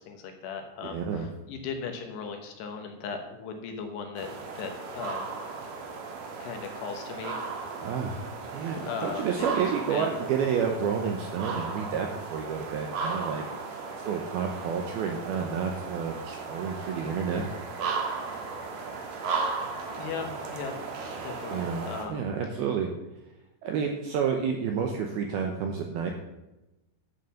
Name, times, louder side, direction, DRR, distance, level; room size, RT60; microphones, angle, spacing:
voice 1, 0.0-4.3 4.6-5.3 6.4-7.5 8.8-9.7 9.9-10.1 20.0-20.8 21.2-22.2, left 6 dB, 70° left, 4 dB, 2.9 m, -37 dB
voice 2, 0.8-1.3 7.8-13.4 13.7-13.8 14.1-17.4 21.5-22.9 23.6-26.1, right 6 dB, 80° right, 3 dB, 2.3 m, -30 dB
sound 1, 4.2-22.1, right 4 dB, 60° right, 2.7 m, -36 dB
11.0 x 6.5 x 7.0 m, 0.99 s
omnidirectional pair, 5.5 m